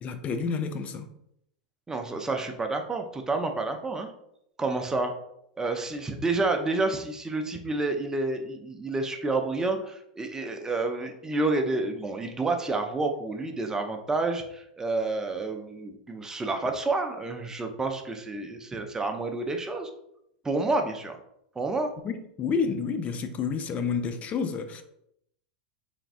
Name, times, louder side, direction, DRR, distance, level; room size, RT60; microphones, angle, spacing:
voice 1, 0.0-1.1 22.0-24.8, left 5 dB, 30° left, 8 dB, 0.5 m, -29 dB
voice 2, 1.9-4.1 4.6-5.1 5.6-19.9 20.4-21.2 21.6-21.9, right 3 dB, 15° right, 4 dB, 0.6 m, -29 dB
3.9 x 3.4 x 2.5 m, 0.75 s
hypercardioid pair, 100°, 4 cm